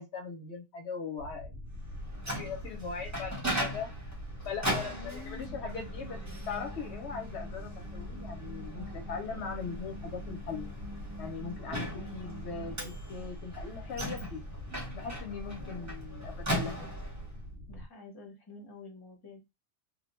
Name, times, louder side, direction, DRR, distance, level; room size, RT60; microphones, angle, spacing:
voice 1, 0.0-1.5 2.4-3.9 4.4-6.2 6.5-10.7 11.2-14.4 14.9-16.9, left 5 dB, 65° left, 3 dB, 0.8 m, -40 dB
sound 1, 1.2-17.9, equal, 70° right, 0.8 m, -44 dB
Microwave oven, 1.9-17.3, equal, 15° right, 0.9 m, -39 dB
voice 2, 4.8-6.3 11.6-12.2 15.6-16.0 16.6-16.9 17.7-19.4, left 3 dB, 25° left, 1 dB, 0.7 m, -49 dB
2.3 x 2.1 x 2.9 m, 0.22 s
omnidirectional pair, 1.3 m